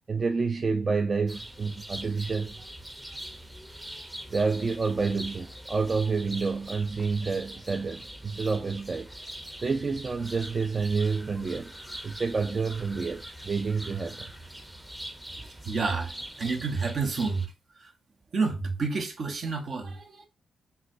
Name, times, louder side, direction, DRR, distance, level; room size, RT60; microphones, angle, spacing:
voice 1, 0.1-2.6 4.3-9.1 9.6-11.7 12.0-14.3, right 4 dB, 40° right, 0.4 m, -29 dB
sound 1, 1.3-17.5, right 1 dB, 10° right, 0.7 m, -43 dB
voice 2, 15.6-17.5 17.8-17.9 18.3-20.3, right 4 dB, 65° right, 0.8 m, -29 dB
3.8 x 2.2 x 2.6 m
cardioid pair, 60°, 0 cm